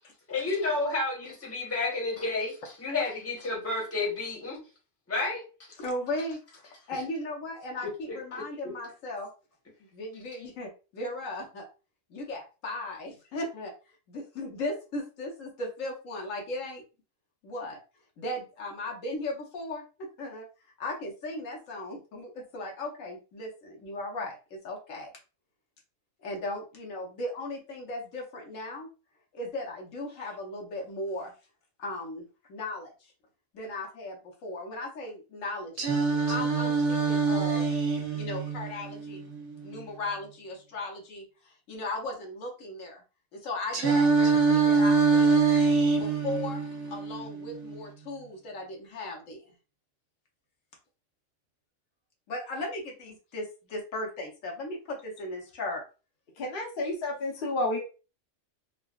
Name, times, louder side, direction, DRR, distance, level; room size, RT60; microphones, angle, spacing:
voice 1, 0.3-4.6 5.1-5.4 8.1-8.4, left 3 dB, 15° left, -2 dB, 0.8 m, -31 dB
voice 2, 5.8-9.3 9.9-11.7 12.1-13.7 14.1-16.8 17.4-17.8 18.2-20.5 20.8-25.1 26.2-28.9 29.3-31.3 31.8-32.9 33.5-35.7 36.3-37.7 38.1-39.3 39.6-41.2 41.7-43.0 43.3-45.5 45.9-46.6 46.9-49.4 52.3-55.8, left 2 dB, 80° left, 1 dB, 1.2 m, -37 dB
Singing, 35.8-39.8 43.7-47.8, right 4 dB, 75° right, 1.1 m, -25 dB
voice 3, 56.4-57.8, left 1 dB, 50° left, 0 dB, 0.8 m, -30 dB
3.8 x 2.2 x 2.3 m, 0.33 s
omnidirectional pair, 1.3 m